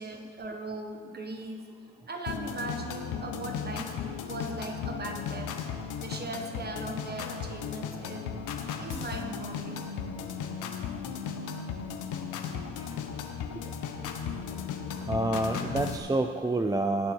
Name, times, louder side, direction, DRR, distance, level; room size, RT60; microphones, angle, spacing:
voice 1, 0.0-1.6 2.1-3.9 4.2-5.5 6.0-8.4 8.8-9.8, right 2 dB, 35° right, 3 dB, 1.5 m, -38 dB
sound 1, 2.3-16.0, left 7 dB, 85° left, 1.0 m, -36 dB
voice 2, 14.9-17.1, right 2 dB, 15° right, 6 dB, 0.4 m, -28 dB
19.0 x 6.9 x 4.6 m, 2.2 s
cardioid pair, 90°, 30 cm